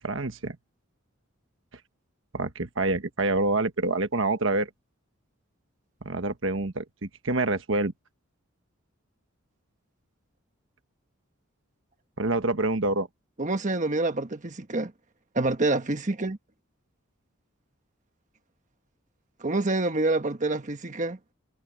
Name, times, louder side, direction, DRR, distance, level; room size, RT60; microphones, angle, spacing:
voice 1, 0.0-0.6 2.3-4.7 6.0-7.9 12.2-13.1, right 2 dB, 65° right, 1.3 m, -27 dB
voice 2, 13.4-14.9 15.3-16.4 19.4-21.2, right 2 dB, 35° right, 1.3 m, -27 dB
head